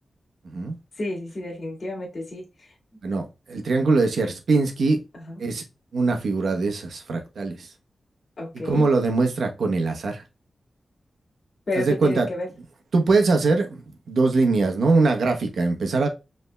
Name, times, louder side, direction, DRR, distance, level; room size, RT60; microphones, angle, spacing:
voice 1, 0.4-0.8 3.0-5.0 5.4-5.6 5.9-7.7 8.6-10.2 11.8-12.3 12.9-13.8 14.1-16.1, right 3 dB, 80° right, 1.0 m, -22 dB
voice 2, 1.0-2.5 5.1-5.4 8.4-8.9 11.7-12.5, left 2 dB, 45° left, 2.0 m, -30 dB
5.3 x 3.5 x 2.2 m
wide cardioid pair, 160°, 0 cm